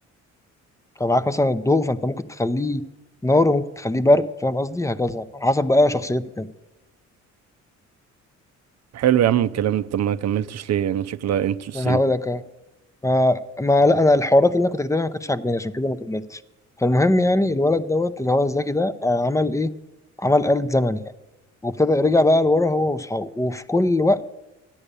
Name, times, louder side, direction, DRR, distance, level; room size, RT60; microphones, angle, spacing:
voice 1, 1.0-2.8 3.2-6.5 11.7-12.4 13.0-16.4 16.8-19.7 20.2-21.0 21.6-24.2, left 2 dB, 10° left, 0.7 m, -20 dB
voice 2, 8.9-12.0, right 10 dB, 60° right, 0.6 m, -22 dB
13.5 x 10.0 x 6.8 m
cardioid pair, 90°, 30 cm